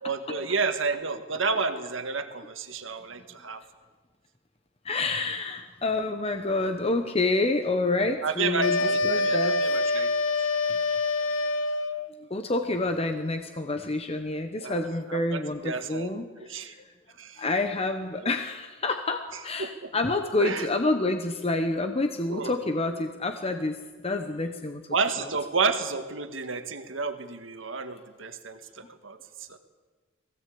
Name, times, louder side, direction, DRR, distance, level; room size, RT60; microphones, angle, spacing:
voice 1, 0.0-3.6 8.2-10.1 14.6-14.8 15.1-16.7 17.2-17.4 18.2-18.3 19.6-19.9 20.4-20.7 22.3-22.5 24.9-29.6, right 4 dB, 70° right, 8 dB, 1.7 m, -31 dB
voice 2, 4.8-9.6 12.2-16.8 17.4-24.8 25.2-25.3, left 2 dB, 30° left, 6 dB, 0.9 m, -28 dB
sound 1, 8.6-12.1, left 3 dB, 75° left, 1.0 m, -26 dB
21.5 x 16.5 x 8.6 m, 1.4 s
head